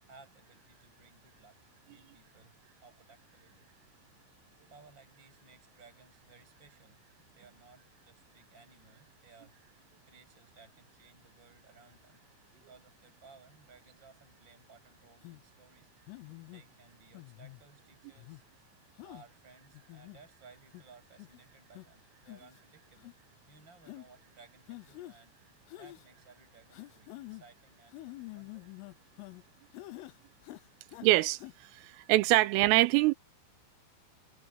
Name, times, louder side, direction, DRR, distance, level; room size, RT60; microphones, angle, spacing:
voice 1, 0.0-1.6 1.9-2.6 2.8-3.7 4.2-4.3 4.7-7.0 7.4-12.2 12.5-16.3 16.5-18.4 19.0-23.1 23.5-28.7, right 4 dB, 20° right, 7.8 m, -60 dB
sound 1, 15.2-15.4 16.1-16.6 17.2-17.6 18.2-18.4 19.0-19.3 19.7-20.2 20.7-20.8 21.2-21.4 21.8-21.9 22.3-22.6 23.0-23.1 23.9-24.1 24.7-25.2 25.7-26.1 26.7-27.5 27.9-29.4 29.7-30.2 30.4-31.1 31.4-31.5, left 19 dB, 80° left, 3.5 m, -47 dB
voice 2, 31.0-33.1, right 18 dB, 85° right, 3.4 m, -25 dB
omnidirectional pair, 5.9 m